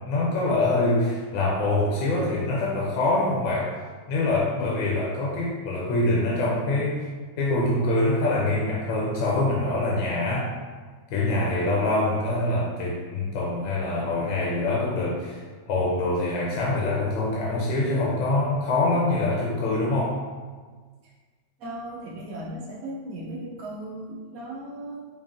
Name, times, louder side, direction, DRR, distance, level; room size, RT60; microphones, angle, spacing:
voice 1, 0.1-3.7 4.1-7.0 7.4-10.5 11.1-20.2, left 2 dB, 85° left, -4 dB, 1.4 m, -24 dB
voice 2, 21.6-25.0, right 1 dB, 85° right, -4 dB, 0.7 m, -37 dB
4.5 x 3.0 x 2.5 m, 1.5 s
omnidirectional pair, 2.2 m